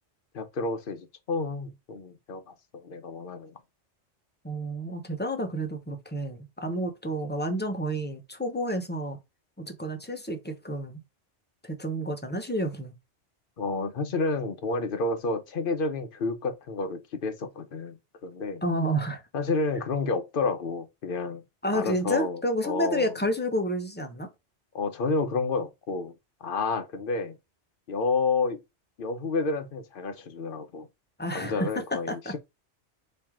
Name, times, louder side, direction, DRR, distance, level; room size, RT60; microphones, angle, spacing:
voice 1, 0.3-3.6 13.6-18.6 19.3-21.4 21.7-23.1 24.7-26.1 26.4-27.4 27.9-28.6 29.0-30.9 31.3-32.4, left 3 dB, 50° left, 0.9 m, -30 dB
voice 2, 4.4-9.2 9.6-11.0 11.6-12.9 18.6-19.2 21.6-24.3 31.2-31.7 32.1-32.3, equal, 10° left, 0.8 m, -30 dB
4.6 x 3.2 x 3.6 m
omnidirectional pair, 1.2 m